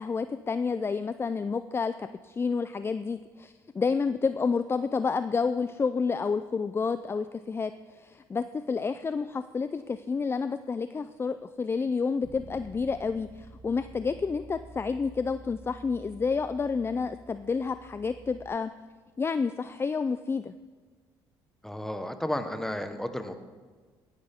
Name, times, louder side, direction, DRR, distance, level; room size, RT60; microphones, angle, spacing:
voice 1, 0.0-18.7 19.2-20.5, left 5 dB, 25° left, 12 dB, 0.4 m, -30 dB
Bass guitar, 12.2-18.5, right 2 dB, 40° right, 2.6 m, -50 dB
voice 2, 21.6-23.4, left 1 dB, 5° left, 8 dB, 1.3 m, -33 dB
16.5 x 10.0 x 3.6 m, 1.4 s
supercardioid pair, 75°, 9 cm